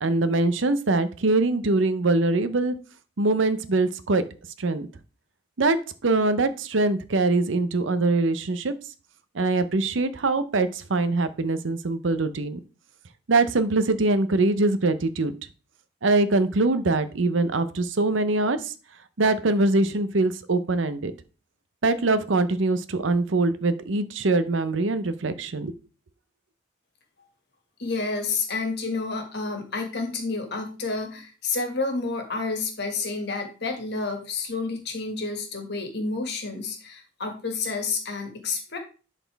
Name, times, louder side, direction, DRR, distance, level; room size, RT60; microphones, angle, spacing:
voice 1, 0.0-2.7 3.2-4.2 4.6-4.9 5.6-5.8 6.0-8.7 9.3-12.6 13.3-15.3 16.0-18.7 19.2-21.1 21.8-25.7, right 2 dB, 75° right, 13 dB, 0.7 m, -23 dB
voice 2, 27.8-38.8, left 4 dB, 60° left, 5 dB, 1.8 m, -30 dB
11.0 x 4.2 x 3.4 m, 0.36 s
head